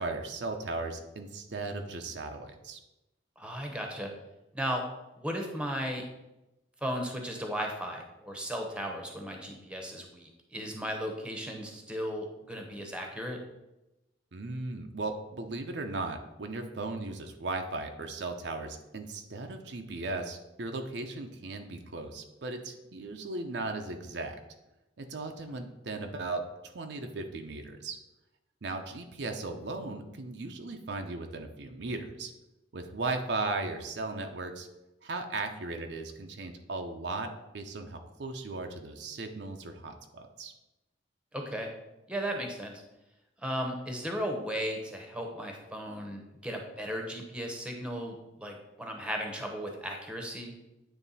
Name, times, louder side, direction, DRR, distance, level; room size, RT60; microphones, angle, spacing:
voice 1, 0.0-2.8 14.3-24.4 25.0-28.0 28.6-32.3 32.7-34.7 35.0-40.5, right 3 dB, 65° right, 5 dB, 0.6 m, -37 dB
voice 2, 3.4-4.1 4.5-4.8 5.2-6.0 6.8-13.4 41.3-41.7 42.1-42.7 43.4-50.5, equal, 5° right, 2 dB, 0.9 m, -36 dB
9.0 x 3.3 x 4.1 m, 0.96 s
head